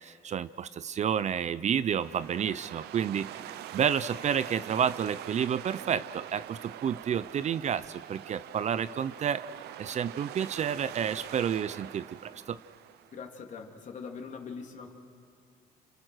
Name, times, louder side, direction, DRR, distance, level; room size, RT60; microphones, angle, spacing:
voice 1, 0.0-3.5 3.7-9.4 9.8-12.6, right 8 dB, 45° right, 15 dB, 0.6 m, -30 dB
sound 1, 2.0-13.2, right 13 dB, 75° right, 0.8 m, -44 dB
voice 2, 13.1-14.9, left 5 dB, 45° left, 3 dB, 3.0 m, -42 dB
30.0 x 28.5 x 6.4 m, 2.3 s
cardioid pair, 110°, 17 cm